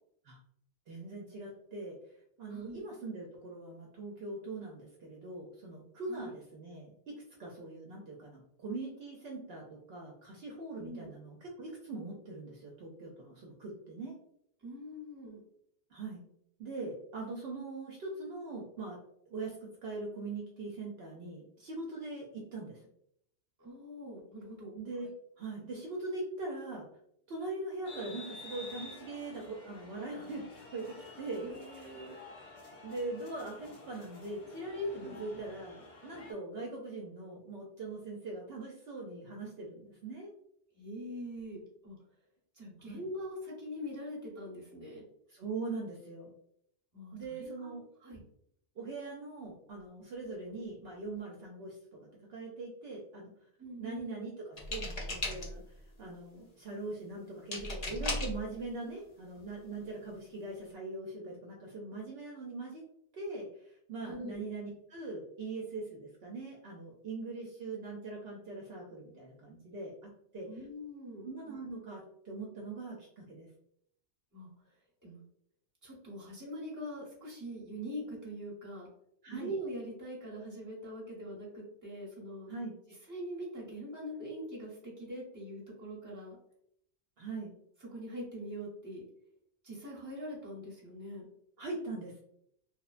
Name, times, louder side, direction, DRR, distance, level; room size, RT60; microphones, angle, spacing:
voice 1, 0.9-2.0 2.4-14.1 15.9-16.2 16.6-19.0 19.3-22.8 24.7-25.1 25.4-26.9 27.3-31.5 31.8-31.9 32.8-40.3 42.8-43.0 45.3-46.3 47.1-47.8 48.8-52.0 52.3-53.3 53.8-55.6 56.0-62.8 63.1-70.5 71.2-73.5 79.2-79.5 82.5-82.7 87.2-87.5 91.6-92.2, right 2 dB, 65° right, -2 dB, 0.7 m, -41 dB
voice 2, 2.5-2.8 6.1-6.3 10.7-11.1 14.6-15.4 23.6-25.1 31.4-32.2 35.0-35.2 40.7-42.0 42.5-45.0 46.9-47.7 48.0-48.2 53.6-54.0 64.0-64.4 70.5-71.3 74.3-74.5 75.0-75.2 75.8-78.9 79.3-82.5 83.1-86.4 87.9-89.0 89.6-91.3, equal, 15° right, -5 dB, 1.0 m, -43 dB
sound 1, 27.8-36.3, left 2 dB, 85° left, 1.1 m, -50 dB
sound 2, 54.6-55.7 57.5-58.4 59.4-59.5 59.8-60.1, left 2 dB, 45° left, 0.5 m, -36 dB
3.0 x 2.1 x 2.4 m, 0.72 s
omnidirectional pair, 1.2 m